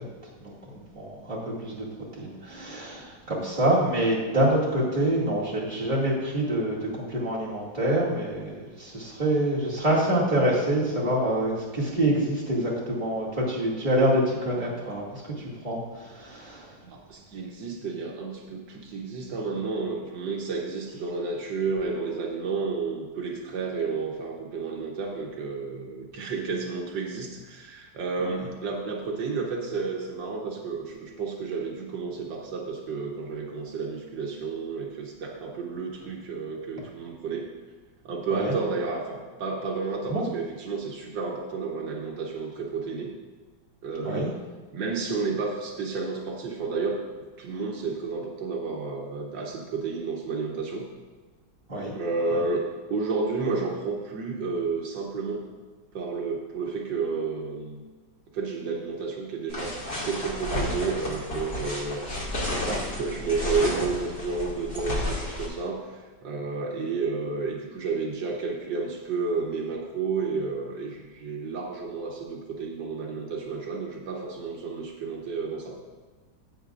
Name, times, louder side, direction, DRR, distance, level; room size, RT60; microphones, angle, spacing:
voice 1, 0.4-1.9 2.2-15.3 15.6-16.7 38.3-38.5 40.1-40.2 44.0-44.3 51.7-51.9 62.6-62.8, right 1 dB, 25° right, -6 dB, 2.4 m, -26 dB
voice 2, 16.8-37.5 38.1-43.1 43.8-44.3 44.7-47.0 47.4-50.9 51.9-55.4 55.9-57.8 58.3-62.0 62.9-75.8, right 4 dB, 80° right, 0 dB, 1.7 m, -31 dB
sound 1, 59.5-65.5, left 1 dB, 50° left, 2.5 m, -31 dB
14.5 x 8.4 x 2.5 m, 1.4 s
omnidirectional pair, 2.0 m